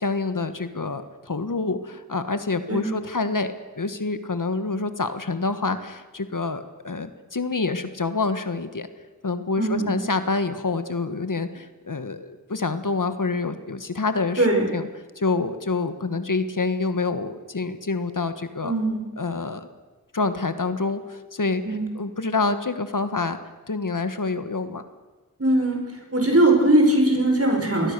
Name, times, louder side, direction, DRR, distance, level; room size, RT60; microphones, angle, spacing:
voice 1, 0.0-8.9 9.2-14.5 14.7-14.9 15.2-18.7 19.2-19.7 20.1-21.6 21.9-23.4 23.7-24.8, left 3 dB, 65° left, 10 dB, 1.5 m, -27 dB
voice 2, 9.6-10.0 14.4-14.6 18.6-19.0 21.6-21.9 25.4-27.9, right 1 dB, 45° right, 2 dB, 5.6 m, -20 dB
26.5 x 20.5 x 6.8 m, 1.3 s
wide cardioid pair, 45°, 34 cm